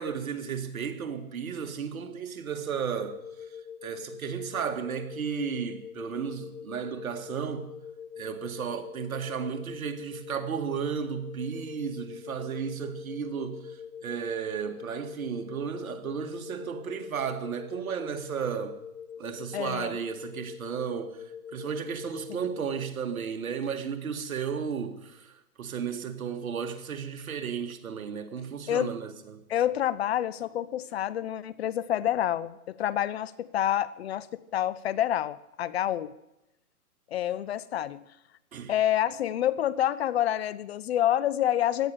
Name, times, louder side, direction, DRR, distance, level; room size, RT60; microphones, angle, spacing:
voice 1, 0.0-3.2 3.8-7.8 8.2-18.8 19.2-21.2 21.5-29.4 38.5-38.7, right 7 dB, 65° right, 2.2 m, -34 dB
sound 1, 3.0-22.9, left 7 dB, 65° left, 1.3 m, -44 dB
voice 2, 19.5-20.0 22.3-22.4 28.7-28.9 29.5-34.3 34.5-36.1 37.1-38.0 38.7-41.9, left 11 dB, 45° left, 0.7 m, -28 dB
17.0 x 11.5 x 6.6 m
hypercardioid pair, 140°, 44 cm